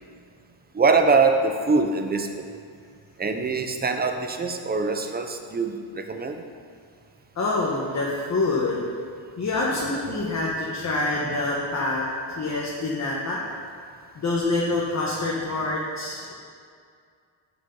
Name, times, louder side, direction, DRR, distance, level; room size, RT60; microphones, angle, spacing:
voice 1, 0.7-2.5 3.2-6.3 10.1-10.4, right 4 dB, 20° right, 5 dB, 0.6 m, -23 dB
voice 2, 7.3-8.8 9.4-13.4 14.1-16.3, left 2 dB, 35° left, -4 dB, 1.2 m, -26 dB
14.0 x 6.5 x 3.8 m, 2.2 s
wide cardioid pair, 145°, 45 cm